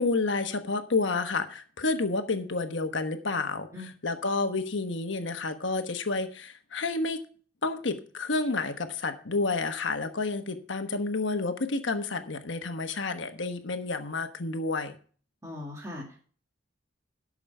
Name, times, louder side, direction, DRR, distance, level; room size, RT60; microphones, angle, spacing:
voice 1, 0.0-7.2 7.6-14.9, left 3 dB, 70° left, 7 dB, 1.2 m, -30 dB
voice 2, 15.4-16.2, left 2 dB, 15° right, -3 dB, 2.3 m, -39 dB
12.5 x 6.4 x 5.4 m, 0.42 s
head